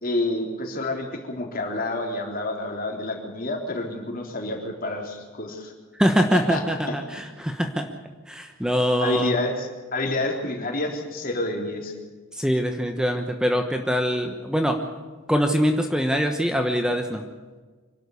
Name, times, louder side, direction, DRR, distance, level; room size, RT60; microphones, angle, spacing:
voice 1, 0.0-5.7 6.3-6.6 6.9-7.0 9.0-11.9, left 2 dB, 45° left, 2 dB, 3.7 m, -28 dB
voice 2, 6.0-7.9 8.3-9.4 12.3-14.8 15.3-17.2, equal, 5° right, 5 dB, 1.1 m, -23 dB
25.5 x 12.0 x 8.4 m, 1.4 s
head